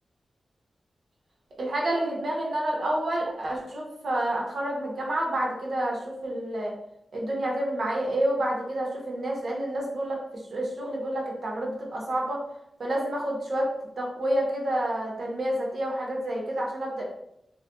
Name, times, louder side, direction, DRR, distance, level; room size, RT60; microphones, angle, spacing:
voice 1, 1.6-6.7 7.1-12.4 12.8-17.0, right 1 dB, 65° right, -2 dB, 0.9 m, -29 dB
3.2 x 2.9 x 2.3 m, 0.80 s
wide cardioid pair, 110°, 0 cm